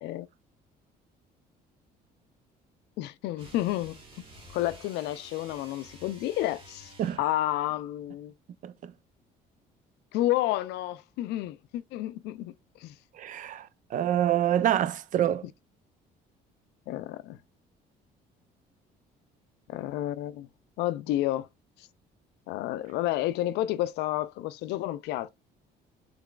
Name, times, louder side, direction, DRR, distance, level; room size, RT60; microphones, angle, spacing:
voice 1, 3.0-4.0 4.5-8.3 10.1-12.5 12.8-12.9 16.9-17.4 19.7-20.5 20.8-21.5 22.5-25.3, left 14 dB, 85° left, 0.4 m, -30 dB
sound 1, 3.3-7.3, right 1 dB, 35° right, 1.7 m, -51 dB
voice 2, 13.2-15.4, right 11 dB, 50° right, 0.4 m, -26 dB
3.8 x 3.3 x 2.3 m
cardioid pair, 110°, 17 cm